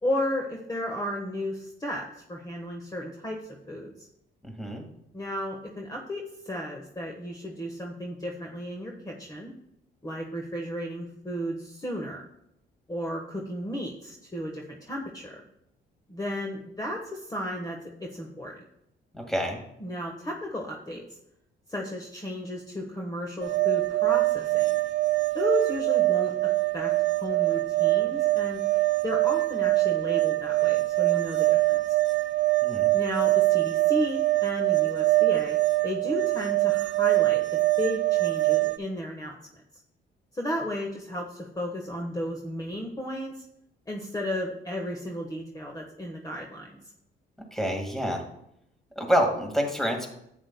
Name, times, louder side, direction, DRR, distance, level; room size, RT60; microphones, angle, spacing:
voice 1, 0.0-3.9 5.1-9.5 10.0-12.2 12.9-15.4 16.1-18.6 19.8-21.0 21.7-24.7 25.3-28.6 29.0-32.0 32.9-35.6 35.8-37.4 37.8-39.6 40.3-43.4 43.9-46.8, equal, 20° left, 0 dB, 1.2 m, -34 dB
voice 2, 4.4-4.8 19.1-19.6 32.6-32.9 47.5-48.2 49.0-50.1, equal, ahead, 2 dB, 1.8 m, -27 dB
sound 1, 23.4-38.8, right 20 dB, 70° right, 0.6 m, -24 dB
11.0 x 8.3 x 2.2 m, 0.78 s
cardioid pair, 90°, 20 cm